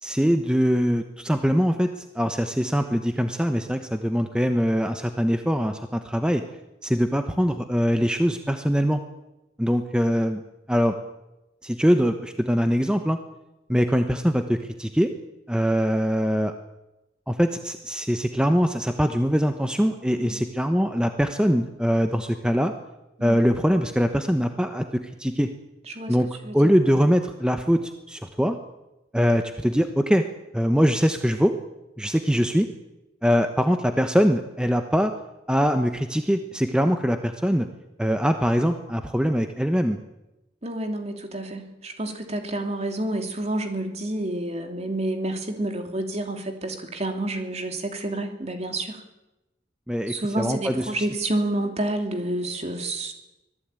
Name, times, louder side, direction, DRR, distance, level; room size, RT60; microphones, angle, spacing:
voice 1, 0.0-6.4 6.8-9.0 9.6-10.4 10.7-10.9 11.6-13.2 13.7-15.1 15.5-16.5 17.3-22.7 23.2-25.5 26.1-26.3 26.5-28.6 29.1-30.2 30.5-31.5 32.0-32.7 33.2-35.1 35.5-37.7 38.0-40.0 49.9-51.1, equal, 5° right, 6 dB, 1.1 m, -22 dB
voice 2, 20.1-20.4 23.2-23.4 25.9-26.2 26.4-26.6 40.6-49.0 50.1-53.1, right 1 dB, 35° right, 5 dB, 2.8 m, -29 dB
25.0 x 18.5 x 9.1 m, 0.98 s
head